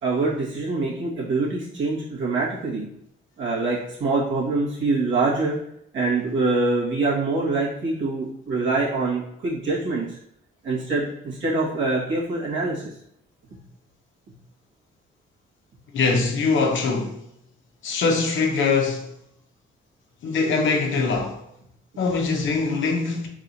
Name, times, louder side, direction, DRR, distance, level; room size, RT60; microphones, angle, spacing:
voice 1, 0.0-2.9 3.4-5.6 5.9-10.2 10.6-12.9, right 3 dB, 65° right, 1.8 m, -24 dB
voice 2, 15.9-17.2 17.8-19.1 20.2-21.4 22.0-23.3, left 4 dB, 70° left, 1.0 m, -22 dB
4.7 x 3.9 x 2.7 m
cardioid pair, 90°, 21 cm